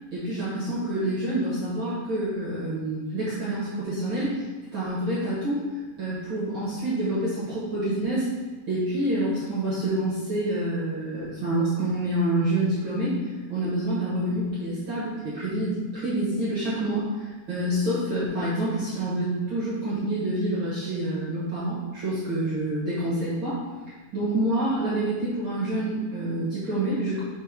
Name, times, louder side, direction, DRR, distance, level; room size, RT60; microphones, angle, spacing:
voice 1, 0.1-4.5 4.7-5.7 6.0-8.3 8.7-13.1 13.5-23.6 24.1-27.2, right 1 dB, 55° right, -8 dB, 1.4 m, -27 dB
5.2 x 4.4 x 4.9 m, 1.3 s
omnidirectional pair, 4.4 m